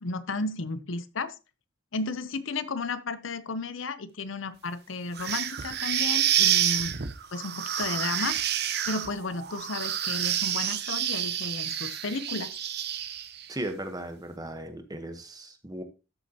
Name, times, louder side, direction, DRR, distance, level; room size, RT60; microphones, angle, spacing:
voice 1, 0.0-1.4 1.9-6.9 7.3-8.4 8.9-12.6, left 3 dB, 75° left, 0.7 m, -33 dB
sound 1, 5.2-13.5, right 10 dB, 55° right, 0.8 m, -28 dB
voice 2, 13.5-15.8, right 1 dB, 20° right, 1.1 m, -36 dB
12.5 x 6.6 x 2.9 m
head